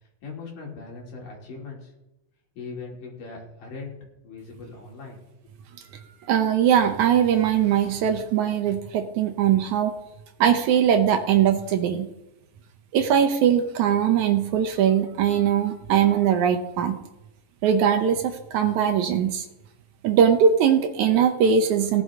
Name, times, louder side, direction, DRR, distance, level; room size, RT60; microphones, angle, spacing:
voice 1, 0.2-1.9 2.6-4.0 4.2-5.2, left 4 dB, 75° left, -2 dB, 4.6 m, -39 dB
voice 2, 6.3-9.9 10.4-12.1 12.9-17.0 17.6-19.5 20.0-22.0, right 8 dB, 70° right, 7 dB, 2.1 m, -21 dB
17.0 x 10.5 x 3.7 m, 0.95 s
omnidirectional pair, 3.8 m